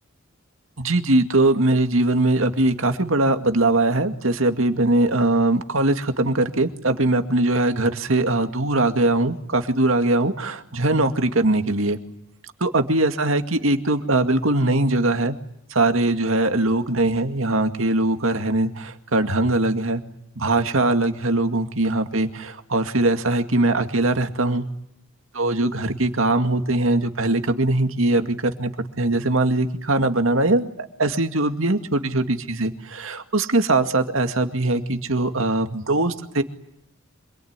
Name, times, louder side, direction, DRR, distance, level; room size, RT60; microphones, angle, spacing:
voice 1, 0.8-12.0 12.6-15.4 15.7-20.0 20.4-24.7 25.3-28.7 29.0-36.4, right 2 dB, 75° right, 7 dB, 2.1 m, -21 dB
26.5 x 22.0 x 9.7 m, 0.74 s
head